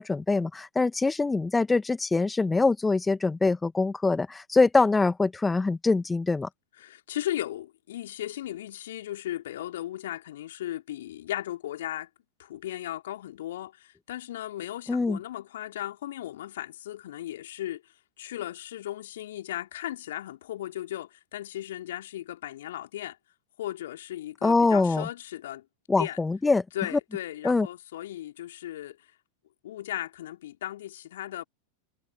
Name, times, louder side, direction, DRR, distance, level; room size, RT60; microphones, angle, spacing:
voice 1, 0.0-6.5 14.9-15.2 24.4-25.1 25.9-26.6 27.4-27.7, left 3 dB, 10° left, 2.0 m, -24 dB
voice 2, 6.8-12.1 12.4-23.2 23.6-25.6 26.0-26.2 26.7-29.0 29.6-31.4, left 13 dB, 65° left, 4.5 m, -36 dB
figure-of-eight pair, 90°, 0 cm